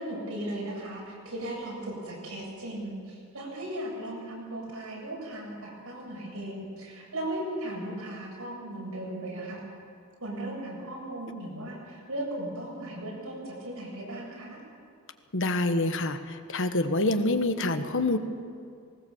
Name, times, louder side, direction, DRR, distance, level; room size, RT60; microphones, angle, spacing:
voice 1, 0.0-9.6 10.2-14.6, right 1 dB, 85° right, -3 dB, 7.6 m, -37 dB
voice 2, 15.3-18.2, left 2 dB, 60° left, 8 dB, 1.3 m, -26 dB
19.5 x 19.0 x 7.3 m, 2.3 s
head